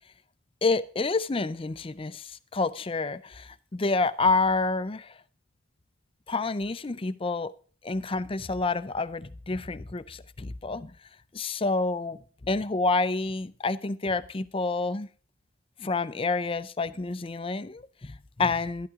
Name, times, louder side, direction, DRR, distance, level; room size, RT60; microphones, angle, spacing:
voice 1, 0.6-5.2 6.3-7.5 7.8-10.9 11.3-15.1 15.8-18.9, left 3 dB, 25° left, 15 dB, 0.5 m, -28 dB
12.5 x 12.0 x 3.6 m, 0.42 s
head